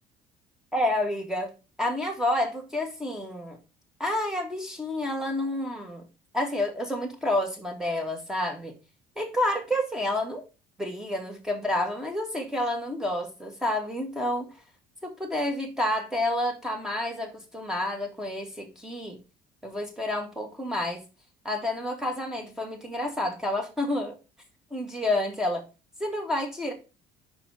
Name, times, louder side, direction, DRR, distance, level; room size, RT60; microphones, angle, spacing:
voice 1, 0.7-1.5 1.8-3.6 4.0-6.0 6.3-8.7 9.2-10.4 10.8-14.5 15.0-19.2 19.6-21.0 21.4-24.2 24.7-25.6 26.0-26.7, left 1 dB, 5° right, 2.1 m, -29 dB
5.5 x 4.8 x 6.4 m
cardioid pair, 130°, 16 cm